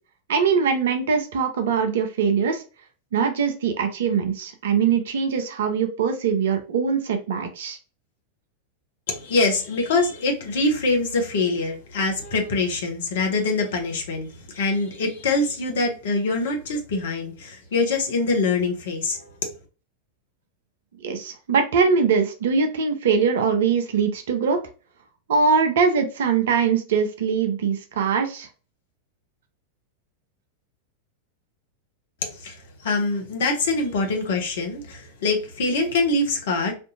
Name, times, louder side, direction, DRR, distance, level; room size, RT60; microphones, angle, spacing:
voice 1, 0.3-2.6 3.1-7.8 21.0-24.6 25.3-28.5, right 6 dB, 60° right, 0.6 m, -22 dB
voice 2, 9.1-19.5 32.2-36.7, left 3 dB, 60° left, 1.1 m, -24 dB
4.4 x 2.6 x 2.7 m
figure-of-eight pair, 90°, 0 cm